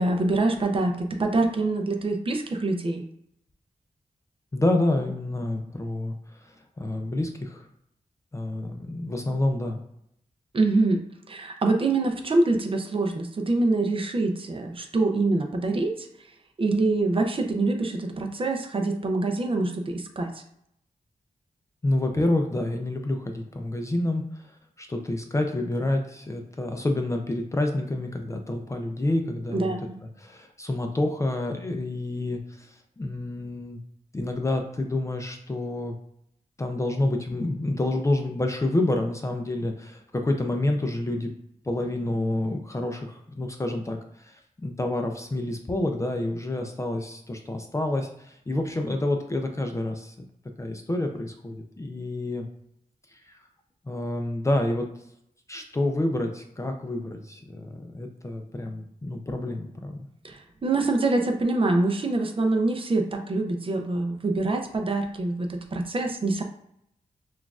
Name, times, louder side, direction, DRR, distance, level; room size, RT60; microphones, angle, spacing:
voice 1, 0.0-3.0 10.5-16.1 16.6-20.4 29.5-30.0 60.2-66.4, right 2 dB, 40° right, 3 dB, 0.5 m, -25 dB
voice 2, 4.5-6.1 6.4-7.7 8.3-9.8 21.8-29.9 30.2-33.8 34.1-36.0 36.6-41.3 41.7-50.1 50.6-52.5 53.1-53.4 53.9-54.9 55.5-60.1, left 1 dB, 20° left, 4 dB, 0.4 m, -28 dB
5.9 x 2.4 x 2.3 m, 0.75 s
wide cardioid pair, 155°, 14 cm